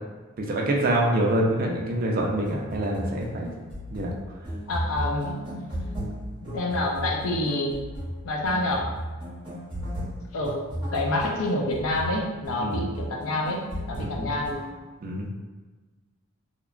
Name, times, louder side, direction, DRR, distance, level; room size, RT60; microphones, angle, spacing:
voice 1, 0.4-3.5 3.9-4.1 12.6-12.9 14.0-14.3 15.0-15.3, right 1 dB, 40° right, 0 dB, 0.3 m, -26 dB
sound 1, 2.3-14.7, equal, 20° right, 0.8 m, -35 dB
voice 2, 4.7-5.3 6.5-7.8 8.2-8.9 10.3-10.6 10.9-13.6 13.9-14.5, left 2 dB, 70° left, 0 dB, 0.4 m, -27 dB
2.8 x 2.1 x 2.4 m, 1.3 s
head